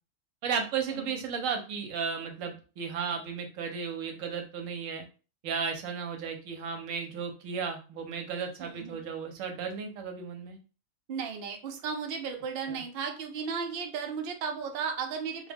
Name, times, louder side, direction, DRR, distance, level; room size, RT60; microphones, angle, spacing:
voice 1, 0.4-5.0 5.4-10.6 12.7-12.8, right 6 dB, 80° right, 4 dB, 1.0 m, -34 dB
voice 2, 8.6-9.0 11.1-15.5, right 6 dB, 60° right, 3 dB, 0.6 m, -35 dB
2.3 x 2.2 x 3.3 m, 0.35 s
omnidirectional pair, 1.4 m